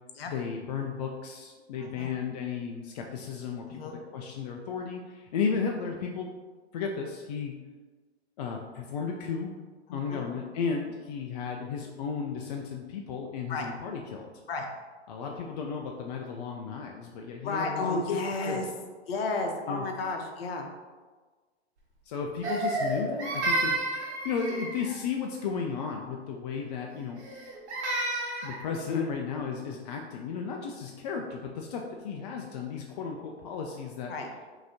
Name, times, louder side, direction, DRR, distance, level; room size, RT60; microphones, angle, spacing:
voice 1, 0.3-3.8 4.1-6.3 6.7-7.6 8.4-9.5 9.9-14.3 15.1-18.0 18.5-18.7 19.7-19.8 22.1-27.2 28.4-34.1, left 6 dB, 40° left, 1 dB, 0.4 m, -34 dB
voice 2, 1.8-2.1 3.7-4.0 9.9-10.2 13.5-13.7 14.5-14.7 17.4-18.7 19.1-20.7 34.1-34.3, left 3 dB, 60° left, 3 dB, 0.9 m, -32 dB
Crying sobbing, 22.4-25.0 27.2-28.6, right 2 dB, 85° right, 1.4 m, -30 dB
5.8 x 2.8 x 2.7 m, 1.4 s
hypercardioid pair, 130°, 34 cm